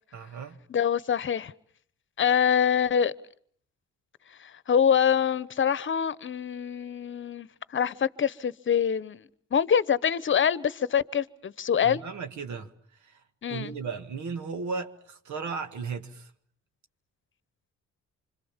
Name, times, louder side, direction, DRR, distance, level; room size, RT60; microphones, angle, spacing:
voice 1, 0.1-0.6 11.8-12.7 13.0-13.2 13.5-16.3, right 5 dB, 70° right, 2.0 m, -35 dB
voice 2, 0.7-1.5 2.2-3.1 4.4-9.2 9.5-12.0 13.4-13.7, left 8 dB, 40° left, 1.0 m, -25 dB
26.5 x 25.0 x 7.3 m
cardioid pair, 90°, 30 cm